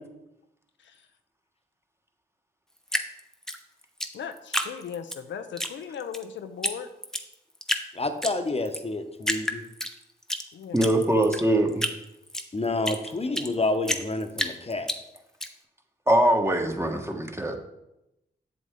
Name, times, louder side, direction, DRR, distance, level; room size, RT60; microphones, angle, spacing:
Drip, 2.9-5.2 5.6-6.2 6.6-6.7 7.0-7.9 8.2-8.8 9.2-10.4 10.8-13.5 13.9-15.5, equal, 5° left, 1.0 m, -29 dB
voice 1, 4.1-6.9 10.5-10.9, left 7 dB, 75° left, 8 dB, 0.6 m, -38 dB
voice 2, 7.9-9.6 12.5-14.9, left 2 dB, 30° left, 8 dB, 1.0 m, -29 dB
voice 3, 10.7-11.9 16.1-17.6, right 1 dB, 15° right, 4 dB, 1.4 m, -22 dB
7.8 x 7.0 x 3.7 m, 0.90 s
supercardioid pair, 40°, 19 cm